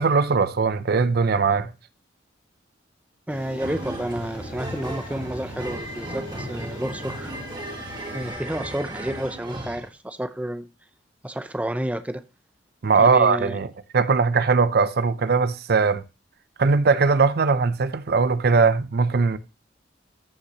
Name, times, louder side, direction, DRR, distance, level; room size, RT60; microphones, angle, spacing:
voice 1, 0.0-1.7 12.8-16.0 16.6-19.4, right 4 dB, 55° right, 0.6 m, -20 dB
sound 1, 3.3-8.3, equal, 75° left, 5.9 m, -41 dB
voice 2, 3.3-7.3 8.1-10.7 11.2-12.2 12.9-13.6, right 1 dB, 10° right, 0.5 m, -30 dB
sound 2, 3.6-9.9, right 1 dB, 25° right, 1.7 m, -35 dB
14.0 x 5.7 x 2.9 m
head